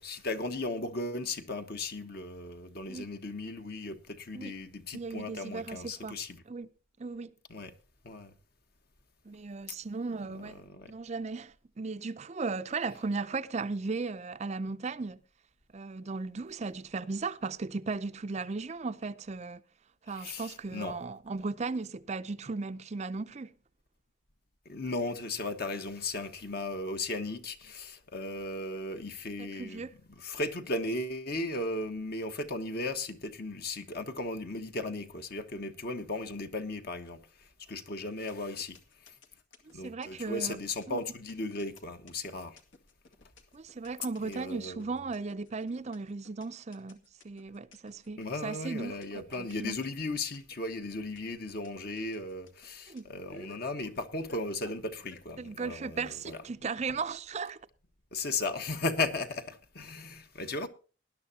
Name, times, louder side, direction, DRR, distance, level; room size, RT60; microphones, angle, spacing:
voice 1, 0.0-6.4 7.5-7.7 8.0-8.3 10.3-10.9 20.1-21.0 24.6-39.2 39.7-42.6 44.2-44.9 48.2-56.4 58.1-60.7, left 2 dB, 50° left, 1.3 m, -36 dB
voice 2, 4.9-6.2 6.5-6.7 7.0-7.3 9.3-15.2 15.7-19.6 20.0-23.5 29.4-29.9 39.8-40.6 40.9-41.0 43.5-47.0 47.2-49.8 52.9-53.1 55.4-57.6, right 4 dB, 35° right, 0.5 m, -36 dB
sound 1, 38.1-55.2, left 3 dB, 80° left, 2.1 m, -56 dB
19.5 x 11.0 x 2.8 m
head